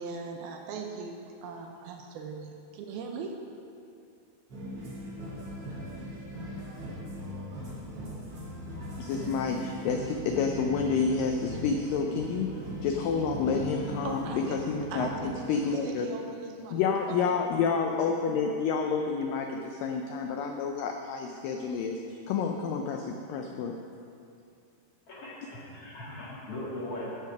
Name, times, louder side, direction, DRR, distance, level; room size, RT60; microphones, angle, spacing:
voice 1, 0.0-3.4 14.0-14.6 14.9-17.2, right 4 dB, 80° right, 3 dB, 2.5 m, -39 dB
sound 1, 4.5-15.3, equal, 40° right, 2.8 m, -39 dB
voice 2, 9.0-16.1 16.7-23.7, left 5 dB, 85° left, 3 dB, 2.0 m, -29 dB
voice 3, 25.1-27.1, left 1 dB, 50° left, -6 dB, 2.2 m, -39 dB
13.5 x 6.0 x 5.9 m, 2.5 s
omnidirectional pair, 4.6 m